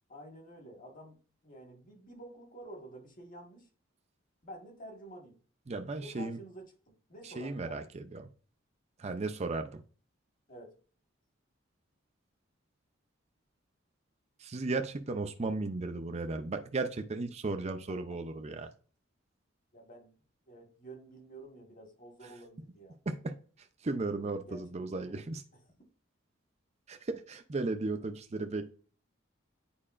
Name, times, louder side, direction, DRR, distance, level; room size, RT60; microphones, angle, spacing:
voice 1, 0.1-3.7 4.4-5.4 6.0-7.9 10.5-10.7 19.7-20.1 20.5-23.0 24.4-25.6, right 1 dB, 45° left, 1.5 m, -50 dB
voice 2, 5.7-6.4 7.2-8.3 9.0-9.8 14.4-18.7 23.1-23.3 23.8-25.4 26.9-28.7, right 3 dB, 35° right, 0.5 m, -35 dB
8.7 x 4.7 x 2.5 m
head